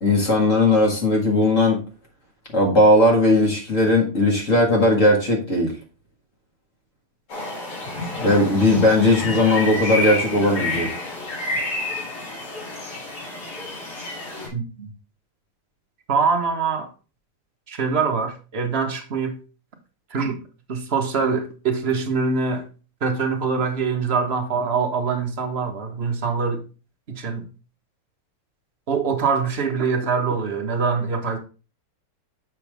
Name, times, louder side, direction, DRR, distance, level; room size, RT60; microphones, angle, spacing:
voice 1, 0.0-1.8 2.5-5.7 8.2-10.9, left 1 dB, 35° left, 2.0 m, -18 dB
sound 1, 7.3-14.5, left 2 dB, 90° left, 3.7 m, -29 dB
voice 2, 14.5-14.9 16.1-16.9 17.7-19.4 20.1-20.4 20.7-22.7 23.0-26.6 27.1-27.4 28.9-31.4, right 5 dB, 40° right, 0.9 m, -24 dB
6.8 x 6.1 x 3.4 m
omnidirectional pair, 2.4 m